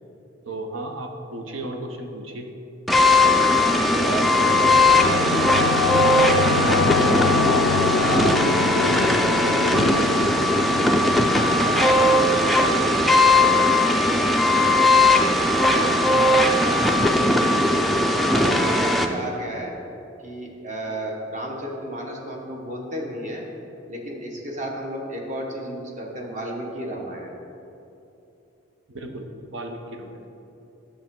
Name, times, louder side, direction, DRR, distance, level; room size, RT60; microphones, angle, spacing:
voice 1, 0.4-2.5 12.4-12.8 15.7-16.4 18.5-18.9 28.9-30.2, right 1 dB, 85° right, 4 dB, 0.9 m, -35 dB
sound 1, 2.9-19.1, left 1 dB, ahead, 0.3 m, -19 dB
voice 2, 3.6-7.2 7.9-8.4 8.7-11.2 11.6-13.8 17.6-19.7 20.2-23.4 23.9-27.4, right 1 dB, 40° right, -1 dB, 1.2 m, -32 dB
Singing / Musical instrument, 3.9-13.0, left 6 dB, 85° left, 0.3 m, -27 dB
10.0 x 6.8 x 3.7 m, 2.8 s
head